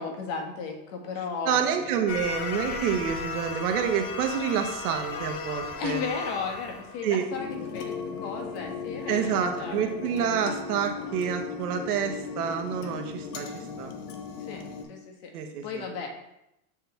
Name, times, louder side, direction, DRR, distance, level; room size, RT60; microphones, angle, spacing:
voice 1, 0.0-1.9 5.8-9.9 14.4-14.6 14.9-15.3 15.6-16.1, left 5 dB, 50° left, 2 dB, 1.7 m, -35 dB
voice 2, 1.4-6.0 7.0-7.2 9.1-13.5 13.8-13.9 15.3-15.8, right 8 dB, 75° right, 5 dB, 1.3 m, -28 dB
sound 1, 2.1-7.5, left 4 dB, 30° left, 0.7 m, -35 dB
sound 2, 7.3-14.8, left 5 dB, 75° left, 1.2 m, -37 dB
7.3 x 4.8 x 3.4 m, 0.87 s
supercardioid pair, 130°, 47 cm